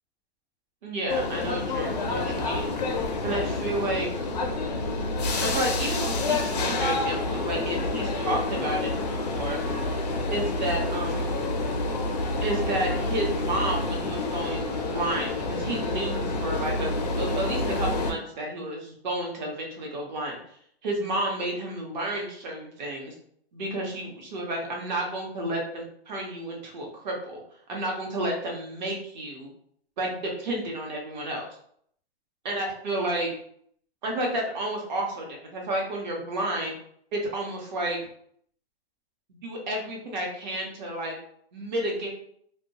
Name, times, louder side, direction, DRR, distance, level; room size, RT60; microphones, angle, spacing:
voice 1, 0.8-2.7 3.2-4.1 5.4-9.6 10.3-11.3 12.4-20.4 20.8-23.1 23.5-27.4 27.7-29.5 30.0-31.5 32.4-33.3 34.0-35.3 35.5-36.7 37.1-38.0 39.4-41.1 41.5-42.1, right 1 dB, 45° right, -1 dB, 0.8 m, -31 dB
sound 1, 1.1-18.1, left 2 dB, 40° left, 0.4 m, -28 dB
2.2 x 2.2 x 2.8 m, 0.66 s
hypercardioid pair, 155°, 32 cm